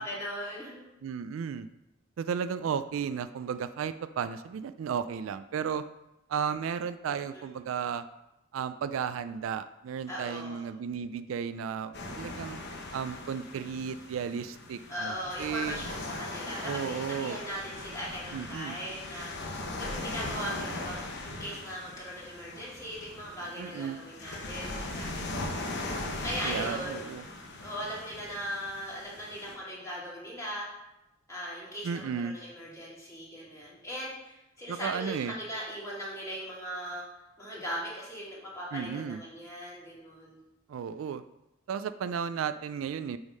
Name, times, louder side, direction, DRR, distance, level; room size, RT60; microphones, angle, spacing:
voice 1, 0.0-0.9 7.1-7.5 10.1-10.6 14.9-25.5 25.9-26.9 27.6-30.7 31.3-37.0 37.4-40.4, equal, 15° left, -7 dB, 2.4 m, -39 dB
voice 2, 1.0-1.7 2.2-5.8 6.3-8.0 8.5-12.6 12.9-15.8 16.7-17.4 18.3-18.8 23.6-24.0 26.4-27.2 31.8-32.4 34.7-35.3 38.7-39.2 40.7-41.2 41.7-43.2, right 7 dB, 75° right, 13 dB, 0.3 m, -34 dB
sound 1, 11.9-29.5, left 2 dB, 55° left, 1.0 m, -39 dB
7.9 x 3.6 x 5.4 m, 0.92 s
head